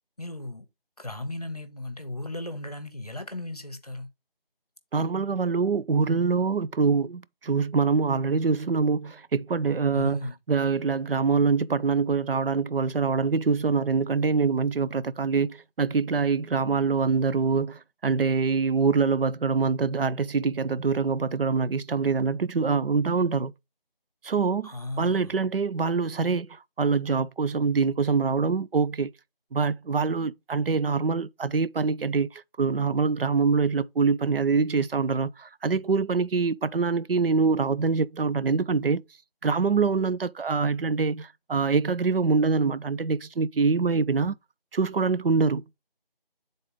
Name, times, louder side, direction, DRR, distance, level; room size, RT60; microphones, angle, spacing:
voice 1, 0.2-0.7 1.0-4.1 9.9-10.3 24.6-25.4, left 2 dB, 40° left, 0.8 m, -36 dB
voice 2, 4.9-10.2 10.5-23.5 24.2-29.1 29.5-39.0 39.4-44.3 44.7-45.6, right 5 dB, 75° right, 0.5 m, -25 dB
8.1 x 3.9 x 3.6 m
figure-of-eight pair, 175°, 29 cm